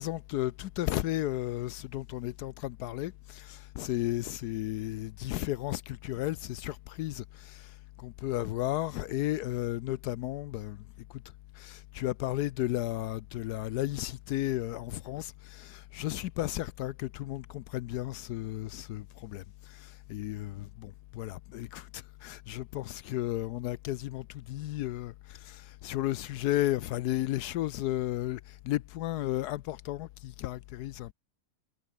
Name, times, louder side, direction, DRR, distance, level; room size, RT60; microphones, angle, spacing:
voice 1, 0.0-10.8 11.6-31.1, left 15 dB, 80° left, 1.1 m, -34 dB
omnidirectional pair, 1.7 m